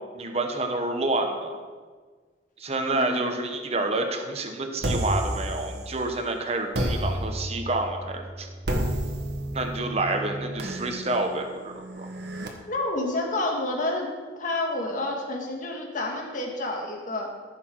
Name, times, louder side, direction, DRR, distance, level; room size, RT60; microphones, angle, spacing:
voice 1, 0.1-1.6 2.6-8.5 9.5-12.1, right 2 dB, 35° right, 4 dB, 1.1 m, -28 dB
voice 2, 2.9-3.3 12.7-14.1 14.4-17.3, left 2 dB, 45° left, 1 dB, 1.9 m, -29 dB
sound 1, 4.8-6.2 6.7-12.5, right 1 dB, 65° right, 1.4 m, -31 dB
14.5 x 6.8 x 4.6 m, 1.5 s
head